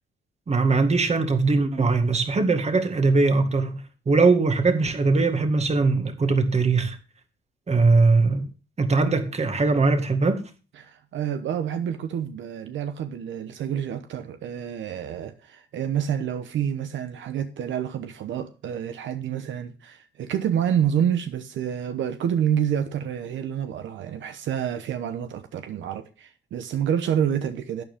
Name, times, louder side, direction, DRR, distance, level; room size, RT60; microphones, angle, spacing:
voice 1, 0.5-7.0 7.7-8.5 8.8-10.4, right 3 dB, 35° right, 1.9 m, -21 dB
voice 2, 10.8-27.8, right 9 dB, 70° right, 1.0 m, -28 dB
12.0 x 9.0 x 3.6 m
cardioid pair, 90°, 20 cm